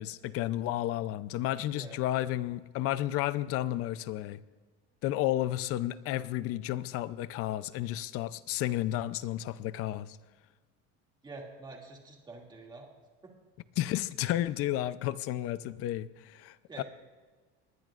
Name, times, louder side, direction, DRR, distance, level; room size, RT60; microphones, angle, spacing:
voice 1, 0.0-4.4 5.0-10.2 13.8-16.8, left 14 dB, 50° left, 15 dB, 0.6 m, -32 dB
voice 2, 1.7-2.0 11.2-12.9 13.2-13.3 16.7-16.8, right 3 dB, 15° right, -1 dB, 2.4 m, -47 dB
24.0 x 20.0 x 2.5 m, 1.4 s
cardioid pair, 175°, 30 cm